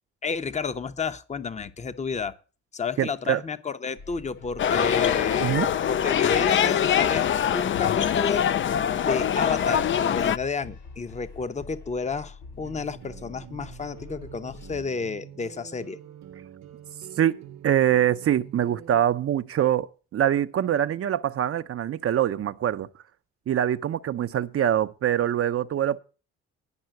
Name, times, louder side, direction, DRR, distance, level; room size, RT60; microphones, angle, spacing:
voice 1, 0.2-2.3 2.7-5.6 5.9-8.5 9.0-16.0, left 5 dB, 25° left, 0.8 m, -31 dB
voice 2, 3.0-3.4 5.4-5.7 17.2-19.9 20.1-22.9 23.5-26.0, right 10 dB, 50° right, 0.6 m, -24 dB
sound 1, 4.0-14.9, left 4 dB, 80° left, 5.1 m, -45 dB
sound 2, 4.6-10.4, left 9 dB, 40° left, 0.4 m, -23 dB
sound 3, 12.6-19.0, right 10 dB, 65° right, 1.0 m, -46 dB
10.5 x 5.5 x 7.7 m
cardioid pair, 90°, 30 cm